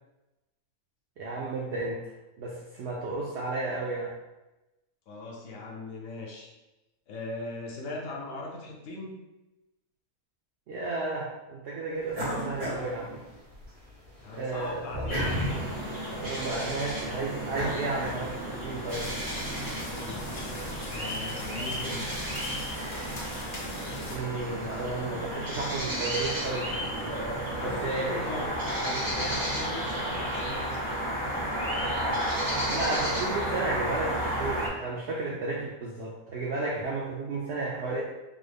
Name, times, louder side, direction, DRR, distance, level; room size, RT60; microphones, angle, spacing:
voice 1, 1.2-2.0 2.4-4.1 10.7-13.2 14.3-15.1 16.1-19.1 24.1-26.7 27.6-28.2 29.1-29.4 32.7-38.0, right 2 dB, 70° right, -4 dB, 0.6 m, -33 dB
voice 2, 5.1-6.5 7.1-9.2 14.2-15.3 19.8-20.6 20.9-22.0 27.6-28.5 28.8-31.0, left 2 dB, 70° left, -1 dB, 1.0 m, -39 dB
sound 1, 12.1-13.7 14.1-18.7, equal, 90° right, 1.7 m, -35 dB
sound 2, 15.1-34.7, right 1 dB, 30° right, 0.3 m, -32 dB
sound 3, 18.9-24.2, left 1 dB, 50° left, 0.6 m, -41 dB
3.6 x 2.0 x 3.3 m, 1.0 s
omnidirectional pair, 1.6 m